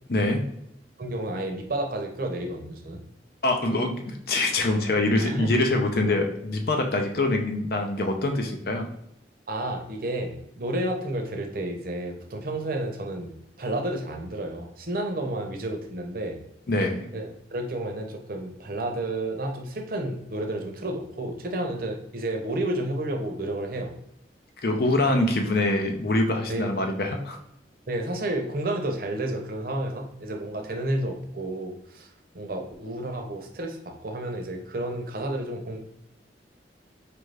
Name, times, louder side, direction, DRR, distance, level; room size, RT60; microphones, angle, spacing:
voice 1, 0.1-0.5 3.4-8.9 16.7-17.1 24.6-27.4, left 2 dB, 60° left, 3 dB, 0.6 m, -24 dB
voice 2, 1.0-3.0 5.1-5.5 9.5-16.4 17.1-23.9 26.5-26.7 27.9-32.1 32.3-35.8, right 1 dB, 55° right, 3 dB, 0.7 m, -31 dB
4.4 x 2.5 x 3.3 m, 0.78 s
head